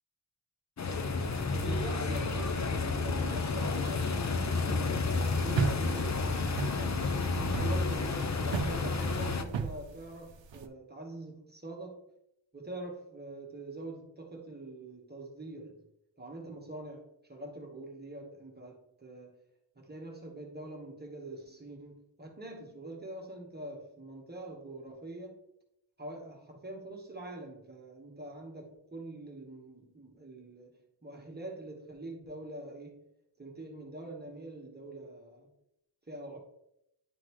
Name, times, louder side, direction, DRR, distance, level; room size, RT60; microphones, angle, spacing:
sound 1, 0.8-9.4, left 3 dB, 40° left, 0.6 m, -31 dB
voice 1, 1.5-6.3 6.7-12.0 12.5-15.8 16.2-19.3 19.7-25.4 26.0-30.7 31.0-33.0 33.4-35.5 36.1-36.4, right 2 dB, 20° right, 1.3 m, -44 dB
sound 2, 5.5-10.6, right 6 dB, 75° right, 0.7 m, -36 dB
10.5 x 3.9 x 3.1 m
wide cardioid pair, 140°, 45 cm